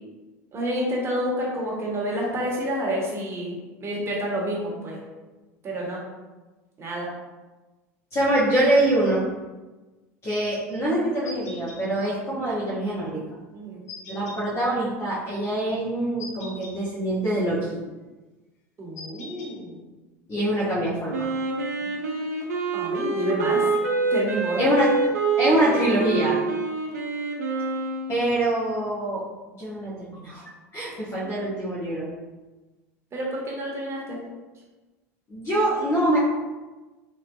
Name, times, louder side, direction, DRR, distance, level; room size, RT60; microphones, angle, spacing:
voice 1, 0.5-5.0 5.6-6.0 6.8-7.1 13.5-13.8 18.8-19.8 22.7-23.7 24.1-24.7 31.2-31.3 33.1-34.2, equal, 30° right, -3 dB, 1.2 m, -29 dB
voice 2, 8.1-9.2 10.2-13.2 14.1-17.8 20.3-21.3 24.6-24.9 25.4-26.4 28.1-29.2 29.6-32.1 35.3-36.2, right 1 dB, 30° left, -8 dB, 1.0 m, -24 dB
sound 1, 11.3-11.8 13.9-14.4 16.2-16.8 19.0-19.5, left 2 dB, 80° left, 0.7 m, -40 dB
Wind instrument woodwind instrument, 21.1-28.2, right 3 dB, 85° right, 0.5 m, -26 dB
3.1 x 2.9 x 2.5 m, 1.2 s
hypercardioid pair, 85°, 8 cm